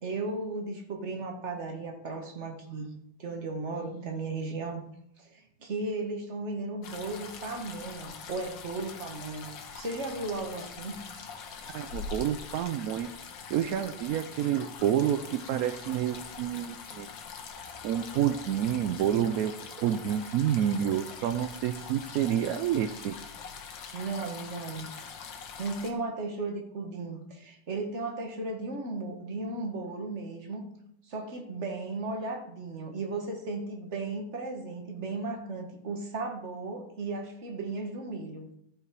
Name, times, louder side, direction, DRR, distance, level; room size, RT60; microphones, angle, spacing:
voice 1, 0.0-2.9 3.2-4.8 5.2-11.0 23.9-24.9 25.6-30.7 31.1-38.5, right 3 dB, 40° right, 3 dB, 1.7 m, -35 dB
sound 1, 6.8-25.9, left 5 dB, 75° left, 1.8 m, -43 dB
voice 2, 11.7-13.1 13.5-17.1 17.8-23.2, right 10 dB, 75° right, 10 dB, 0.8 m, -29 dB
14.0 x 5.8 x 4.7 m, 0.74 s
omnidirectional pair, 2.0 m